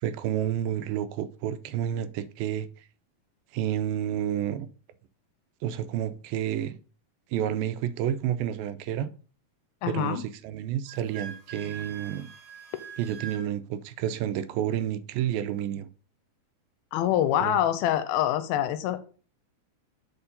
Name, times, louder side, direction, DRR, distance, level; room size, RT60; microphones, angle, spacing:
voice 1, 0.0-2.7 3.5-4.7 5.6-6.8 7.3-9.1 9.9-12.3 13.0-15.9 17.4-17.5, right 10 dB, 80° right, 2.3 m, -30 dB
voice 2, 9.8-10.2 16.9-19.0, left 11 dB, 90° left, 2.5 m, -25 dB
Wind instrument woodwind instrument, 10.9-13.5, right 7 dB, 55° right, 1.8 m, -43 dB
7.1 x 4.3 x 5.2 m
omnidirectional pair, 4.3 m